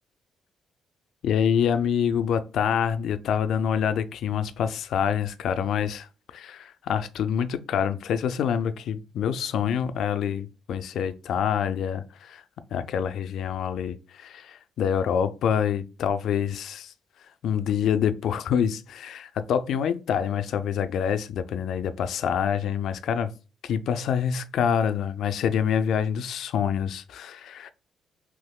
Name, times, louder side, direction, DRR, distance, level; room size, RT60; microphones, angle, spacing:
voice 1, 1.2-6.1 6.3-12.4 12.7-16.9 17.4-23.3 23.6-27.7, left 8 dB, 75° left, 0.3 m, -26 dB
3.5 x 3.0 x 2.3 m
cardioid pair, 90°, 0 cm